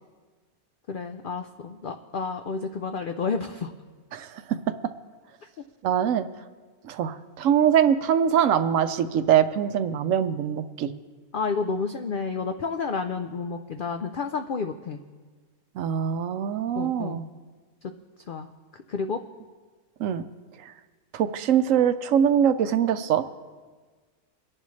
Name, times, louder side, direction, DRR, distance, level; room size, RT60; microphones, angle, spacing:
voice 1, 0.9-3.7 11.3-15.0 16.8-17.2 18.3-18.5 18.9-19.2, left 4 dB, 90° left, 7 dB, 0.4 m, -30 dB
voice 2, 4.1-4.6 5.8-6.3 6.8-10.9 15.8-17.3 20.0-20.2 21.1-23.2, right 9 dB, 70° right, 11 dB, 0.9 m, -23 dB
23.5 x 11.0 x 3.2 m, 1.4 s
omnidirectional pair, 1.6 m